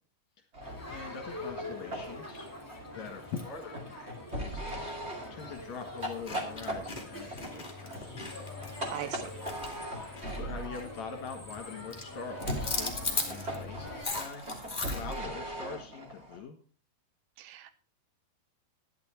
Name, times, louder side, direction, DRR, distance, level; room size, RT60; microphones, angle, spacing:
sound 1, 0.5-10.8 12.3-16.4, right 1 dB, 25° right, 1.3 m, -40 dB
Crowd, 0.6-14.0, left 2 dB, 5° left, 2.2 m, -44 dB
voice 1, 0.9-2.5 2.9-5.0 5.3-8.2 10.3-16.6, left 5 dB, 55° left, 3 dB, 2.5 m, -43 dB
sound 2, 5.4-5.6 6.0-10.4 10.7-11.0 11.3-11.6 11.9-15.2, left 3 dB, 20° left, 1.2 m, -37 dB
voice 2, 8.9-9.3 17.4-17.7, right 11 dB, 85° right, 12 dB, 2.9 m, -39 dB
12.0 x 10.5 x 4.3 m, 0.37 s
omnidirectional pair, 4.6 m